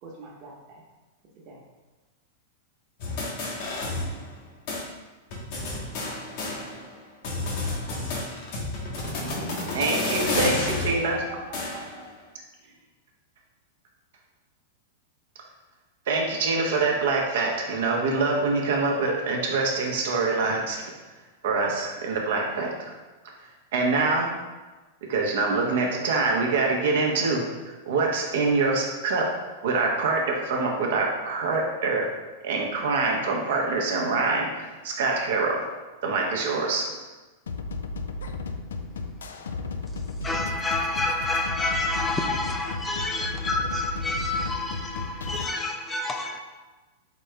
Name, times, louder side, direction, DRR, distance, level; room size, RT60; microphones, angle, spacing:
voice 1, 0.0-0.8 1.4-1.6 3.9-4.0 9.6-10.4 11.1-12.0 12.6-12.7, right 1 dB, 45° right, -1 dB, 1.1 m, -42 dB
sound 1, 3.0-4.4 4.7-4.8 5.3-6.9 7.2-12.0, left 2 dB, 55° left, 1.1 m, -30 dB
voice 2, 9.7-11.2 11.7-11.9 16.1-20.8 21.4-22.9 23.7-24.3 25.1-27.4 27.9-29.3 29.6-32.1 32.4-35.5 36.0-36.8, right 3 dB, 70° right, 0 dB, 0.9 m, -25 dB
sound 2, 37.5-45.5, left 3 dB, 80° left, 0.4 m, -34 dB
voice 3, 40.2-46.4, left 2 dB, 15° left, 3 dB, 0.4 m, -28 dB
4.1 x 3.6 x 3.3 m, 1.2 s
hypercardioid pair, 110°, 0 cm